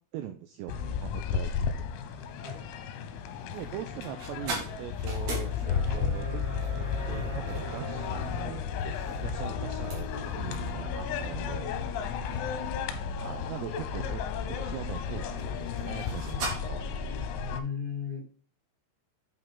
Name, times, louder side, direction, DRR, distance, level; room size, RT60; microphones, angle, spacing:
voice 1, 0.1-1.9 3.5-11.7 13.2-17.0, right 11 dB, 90° right, 7 dB, 2.4 m, -42 dB
sound 1, 0.7-17.6, left 7 dB, 85° left, 3.1 m, -33 dB
sound 2, 1.5-16.5, right 3 dB, 50° right, 2.7 m, -42 dB
voice 2, 17.4-18.2, left 7 dB, 20° right, -7 dB, 5.0 m, -36 dB
8.1 x 6.4 x 3.7 m, 0.41 s
omnidirectional pair, 5.6 m